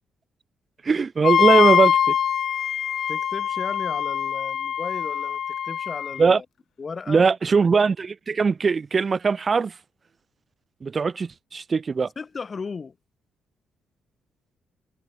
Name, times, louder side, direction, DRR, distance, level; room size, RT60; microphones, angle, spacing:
voice 1, 0.8-2.1 6.2-6.4 7.1-9.7 10.8-12.1, right 5 dB, 35° right, 0.6 m, -20 dB
Wind instrument woodwind instrument, 1.2-6.2, left 9 dB, 60° left, 0.7 m, -23 dB
voice 2, 3.1-6.5 6.8-7.3 12.2-13.0, left 5 dB, 35° left, 1.9 m, -35 dB
cardioid pair, 90°, 0 cm